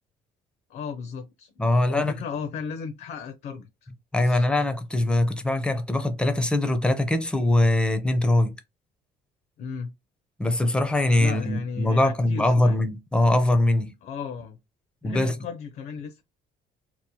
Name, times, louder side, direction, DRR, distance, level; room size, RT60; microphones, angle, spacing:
voice 1, 0.7-4.5 9.6-9.9 11.2-12.8 14.0-14.6 15.0-16.2, left 6 dB, 65° left, 0.5 m, -35 dB
voice 2, 1.6-2.1 4.1-8.5 10.4-13.9 15.0-15.3, left 1 dB, 5° left, 0.4 m, -22 dB
2.9 x 2.0 x 2.7 m
cardioid pair, 110°, 17 cm